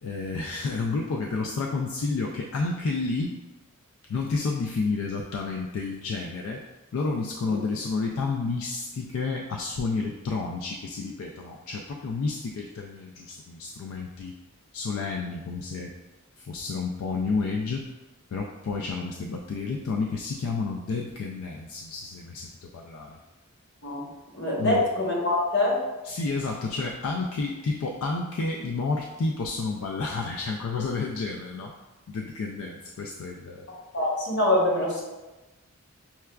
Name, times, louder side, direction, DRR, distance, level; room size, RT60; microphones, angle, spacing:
voice 1, 0.0-3.4 4.1-6.6 6.9-14.4 14.7-15.9 16.4-17.9 18.3-23.2 24.6-24.8 26.0-31.7 32.1-33.7, left 4 dB, 70° left, 1 dB, 0.3 m, -30 dB
voice 2, 24.3-25.8 33.9-35.0, left 1 dB, 50° left, -3 dB, 0.9 m, -24 dB
5.6 x 2.3 x 2.2 m, 1.1 s
head